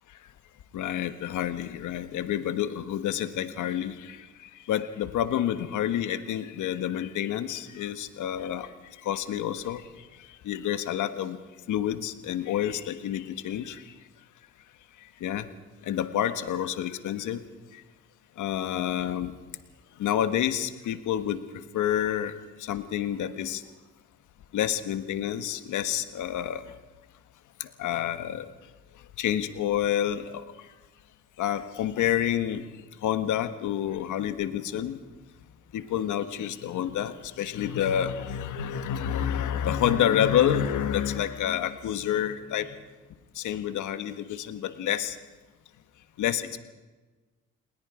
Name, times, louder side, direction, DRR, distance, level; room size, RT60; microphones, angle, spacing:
voice 1, 0.7-8.7 9.0-11.4 11.7-13.9 15.2-15.5 15.8-17.4 17.7-17.8 18.4-19.3 20.0-21.4 21.7-23.6 24.5-26.6 27.6-28.5 29.2-30.7 31.4-32.7 33.0-35.0 35.7-42.8 43.3-45.2 46.2-46.6, left 10 dB, 80° left, 10 dB, 1.4 m, -29 dB
29.0 x 20.0 x 5.0 m, 1.3 s
cardioid pair, 90°, 30 cm